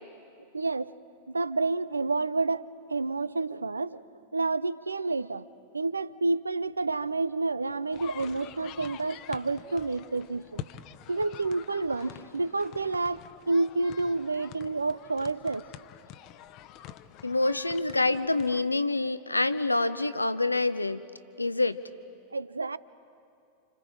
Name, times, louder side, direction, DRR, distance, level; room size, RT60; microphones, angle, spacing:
voice 1, 0.5-0.9 1.3-2.6 2.9-4.0 4.3-5.5 5.7-10.6 11.1-15.6 22.3-22.8, right 3 dB, 80° right, 18 dB, 0.5 m, -29 dB
sound 1, 7.9-18.6, left 11 dB, 40° left, 0.8 m, -46 dB
voice 2, 17.2-21.0 21.4-21.8, left 2 dB, 85° left, 13 dB, 0.7 m, -26 dB
30.0 x 27.0 x 4.9 m, 2.5 s
figure-of-eight pair, 90°, 0 cm